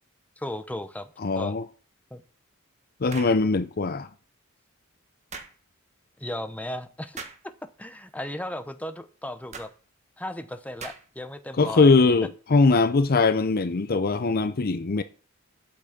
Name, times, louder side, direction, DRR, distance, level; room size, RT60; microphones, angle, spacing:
voice 1, 0.4-1.1 1.4-1.6 2.1-2.2 6.2-7.2 7.8-9.7 10.2-11.9, left 1 dB, 5° left, 0.8 m, -35 dB
voice 2, 1.2-1.6 3.0-4.1 11.6-15.0, left 3 dB, 45° left, 0.6 m, -21 dB
sound 1, 3.1-3.4 5.3-5.6 7.2-7.4 9.5-9.7 10.8-11.2, right 5 dB, 30° right, 1.3 m, -40 dB
8.6 x 6.1 x 8.0 m
head